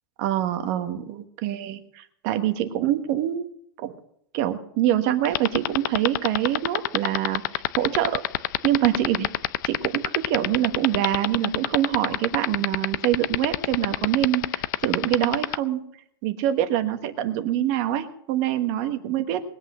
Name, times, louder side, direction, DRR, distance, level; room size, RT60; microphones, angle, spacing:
voice 1, 0.2-3.5 3.8-3.9 4.3-8.2 8.6-9.3 9.6-15.8 16.2-19.4, right 12 dB, 35° right, 9 dB, 1.3 m, -25 dB
sound 1, 5.2-15.6, left 16 dB, 50° left, 0.6 m, -23 dB
20.5 x 8.4 x 6.1 m, 0.68 s
supercardioid pair, 165°, 13 cm